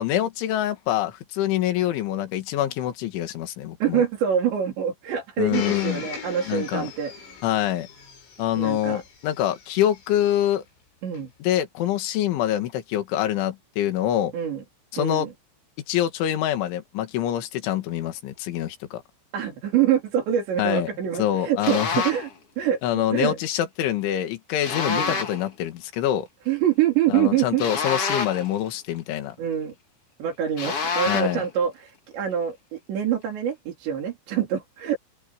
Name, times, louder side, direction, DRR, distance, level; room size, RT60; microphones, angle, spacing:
voice 1, 0.0-4.0 5.4-6.0 6.5-6.9 7.4-7.9 8.4-10.6 11.4-14.3 14.9-15.3 15.9-19.0 20.6-20.9 21.2-22.0 22.8-26.3 27.1-29.4 31.1-31.4, left 12 dB, 70° left, 4.3 m, -25 dB
voice 2, 3.8-7.4 8.6-9.0 11.0-11.3 14.3-14.6 15.0-15.3 19.3-22.3 22.6-22.8 23.1-23.4 24.9-25.2 26.5-27.6 29.4-29.7 30.2-35.0, right 9 dB, 60° right, 5.8 m, -25 dB
Domestic sounds home sounds, 5.5-10.4 11.1-11.2, left 9 dB, 85° left, 9.2 m, -39 dB
sound 1, 21.6-22.3 24.6-25.5 27.6-28.6 30.6-31.4, left 5 dB, 40° left, 2.5 m, -27 dB
open air
omnidirectional pair, 5.8 m